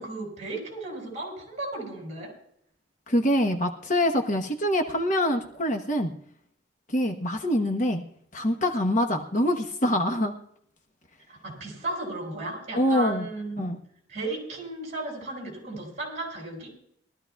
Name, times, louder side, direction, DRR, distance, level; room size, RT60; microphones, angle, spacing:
voice 1, 0.0-2.3 11.3-13.7 14.1-16.7, right 2 dB, 40° right, 0 dB, 6.5 m, -35 dB
voice 2, 3.1-6.1 6.9-8.0 8.3-10.3 12.8-13.3 13.6-13.8, left 1 dB, 40° left, 4 dB, 1.1 m, -25 dB
22.5 x 13.5 x 2.4 m, 0.68 s
head